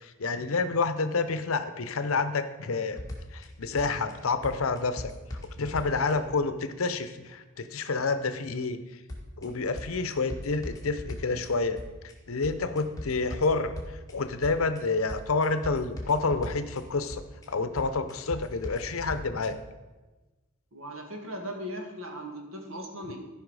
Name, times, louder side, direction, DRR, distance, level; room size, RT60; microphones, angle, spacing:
voice 1, 0.0-3.0 3.3-5.1 5.6-8.8 9.4-11.8 12.3-17.2 17.5-19.6, left 4 dB, 70° left, 10 dB, 0.7 m, -29 dB
sound 1, 3.0-3.4 3.8-4.1 4.4-6.1 9.1-9.4 9.8-11.5 11.8-12.1 12.4-14.1 14.4-14.8 15.1-16.8 17.1-17.4 17.8-19.5, left 1 dB, 15° left, 1.7 m, -39 dB
voice 2, 20.7-23.2, equal, 65° right, 2 dB, 1.9 m, -38 dB
14.0 x 5.7 x 4.8 m, 1.2 s
head